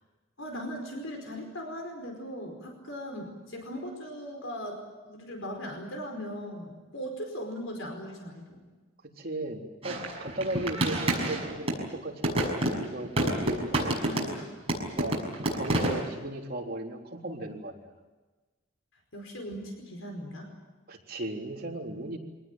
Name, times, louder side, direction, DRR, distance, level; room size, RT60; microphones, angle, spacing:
voice 1, 0.4-8.7 14.0-14.5 19.1-20.5, equal, 70° left, 3 dB, 4.9 m, -39 dB
voice 2, 9.2-14.3 15.0-15.2 15.5-17.8 20.9-22.2, right 1 dB, 45° right, 0 dB, 3.8 m, -36 dB
sound 1, 9.8-11.9 12.2-14.4 14.7-16.1, right 1 dB, 30° right, 6.3 m, -28 dB
25.5 x 19.0 x 9.3 m, 1.2 s
head